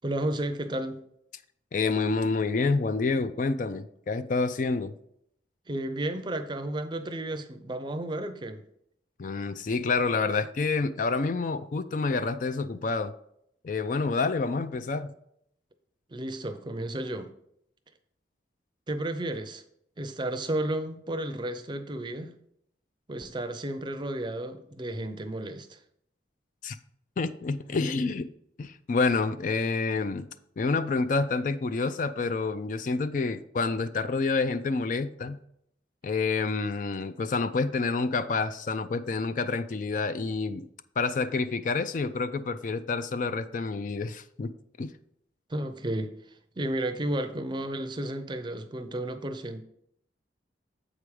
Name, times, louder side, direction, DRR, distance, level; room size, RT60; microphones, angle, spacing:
voice 1, 0.0-1.0 5.7-8.6 16.1-17.3 18.9-19.6 20.0-22.4 23.1-25.8 45.5-46.2 46.6-49.6, right 1 dB, 25° right, 0.5 m, -32 dB
voice 2, 1.7-4.9 9.2-13.1 13.6-15.1 26.6-26.8 27.2-28.3 28.6-30.3 30.6-35.4 36.0-40.7 41.0-44.5 44.8-44.9, left 4 dB, 45° left, 0.4 m, -28 dB
7.6 x 4.9 x 4.8 m
head